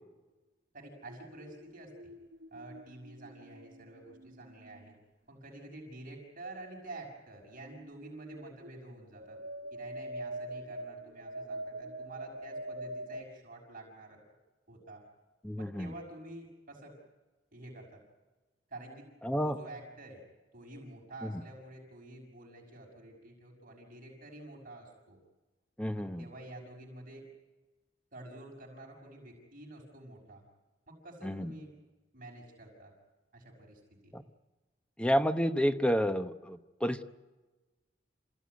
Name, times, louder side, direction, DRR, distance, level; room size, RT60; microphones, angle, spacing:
voice 1, 0.7-2.1 2.5-5.0 5.3-9.4 9.7-14.2 14.7-15.0 15.6-16.9 17.5-18.0 18.7-19.1 19.4-20.2 20.5-25.2 26.0-27.3 28.1-30.4 30.9-31.7 32.1-32.9 33.3-34.1, right 2 dB, 50° right, -2 dB, 6.1 m, -49 dB
sound 1, 1.1-4.9 7.7-13.2, right 1 dB, 70° right, 1.6 m, -44 dB
voice 2, 15.4-15.9 19.2-19.6 25.8-26.2 31.2-31.5 34.1-34.2 35.0-37.0, equal, 5° left, 9 dB, 0.9 m, -30 dB
28.0 x 16.0 x 9.6 m, 1.2 s
head